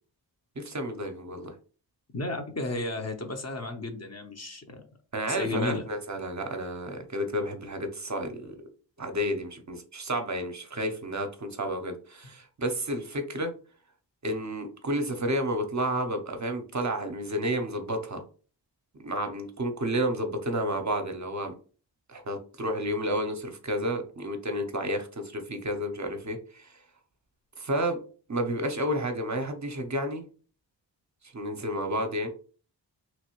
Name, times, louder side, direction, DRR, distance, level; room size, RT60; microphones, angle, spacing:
voice 1, 0.6-1.5 5.1-8.6 9.0-13.5 14.2-18.2 19.0-21.5 22.1-26.8 27.6-28.0 28.3-30.2 31.2-32.3, equal, 40° right, 5 dB, 0.6 m, -31 dB
voice 2, 2.1-4.8 5.3-5.8, left 2 dB, 35° left, 5 dB, 0.7 m, -33 dB
3.1 x 2.6 x 2.9 m, 0.39 s
cardioid pair, 55°, 44 cm